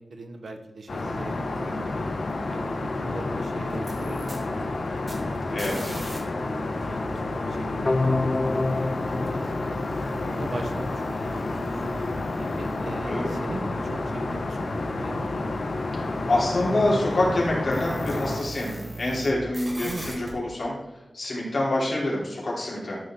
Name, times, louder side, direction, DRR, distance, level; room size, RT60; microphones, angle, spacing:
voice 1, 0.0-2.0 2.5-5.0 5.5-5.6 5.9-9.8 10.2-11.8 12.4-15.5 19.8-20.2, right 2 dB, 75° right, 6 dB, 1.0 m, -41 dB
Aircraft, 0.9-18.4, left 2 dB, 75° left, 1.0 m, -30 dB
sound 1, 3.7-6.2 6.4-19.3 19.5-20.3, right 2 dB, 30° right, 2.5 m, -42 dB
sound 2, 7.9-10.8, left 2 dB, 40° left, 0.5 m, -28 dB
voice 2, 16.0-20.7 21.1-23.0, left 1 dB, 55° left, -5 dB, 3.5 m, -26 dB
12.5 x 5.6 x 3.8 m, 1.0 s
wide cardioid pair, 100°, 0 cm